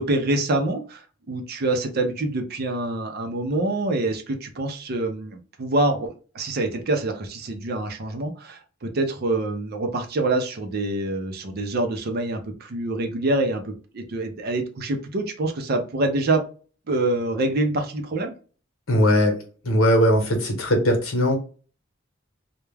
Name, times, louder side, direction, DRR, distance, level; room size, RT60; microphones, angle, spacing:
voice 1, 0.0-6.1 6.3-16.4 16.9-18.3, right 2 dB, 50° right, 4 dB, 0.5 m, -26 dB
voice 2, 18.9-19.4 19.6-21.4, equal, 80° left, 3 dB, 0.9 m, -19 dB
2.2 x 2.1 x 3.2 m, 0.38 s
head